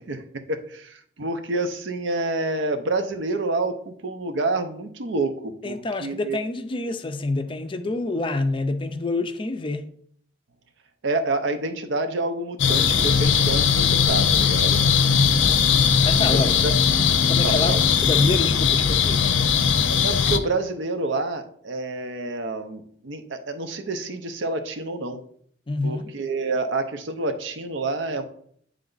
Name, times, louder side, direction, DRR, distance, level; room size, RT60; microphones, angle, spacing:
voice 1, 0.0-6.4 11.0-14.8 15.4-15.8 16.2-16.7 17.4-17.8 20.0-25.2 25.8-28.3, right 2 dB, 75° right, 0.7 m, -28 dB
voice 2, 5.6-9.8 15.1-15.4 16.0-16.6 17.1-19.3 25.7-26.1, left 2 dB, 25° left, 0.4 m, -27 dB
sound 1, 12.6-20.4, left 7 dB, 85° left, 0.5 m, -19 dB
8.8 x 3.3 x 3.9 m
head